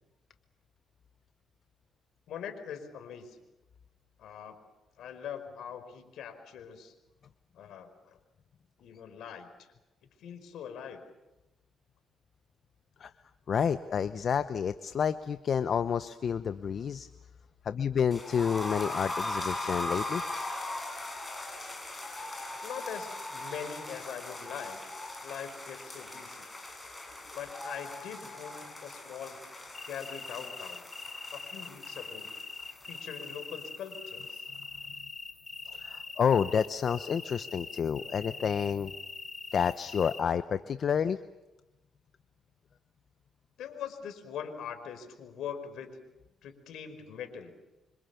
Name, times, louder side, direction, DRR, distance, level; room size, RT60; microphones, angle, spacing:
voice 1, 2.3-3.4 4.2-4.6 5.0-6.9 7.5-8.2 8.8-9.7 10.2-11.0 22.6-25.0 25.2-26.5 27.3-29.4 29.8-30.8 31.3-32.3 32.8-34.5 43.6-46.0 46.4-47.5, left 8 dB, 75° left, 8 dB, 4.9 m, -42 dB
voice 2, 13.5-17.1 17.6-20.2 35.7-38.9 39.5-41.2, left 7 dB, 55° left, 11 dB, 0.9 m, -29 dB
sound 1, 18.1-34.0 34.2-34.3 34.6-34.7, left 2 dB, 15° left, 6.1 m, -39 dB
sound 2, 29.7-40.2, left 4 dB, 35° left, 4.1 m, -43 dB
26.5 x 26.0 x 7.0 m, 0.98 s
cardioid pair, 90°, 0 cm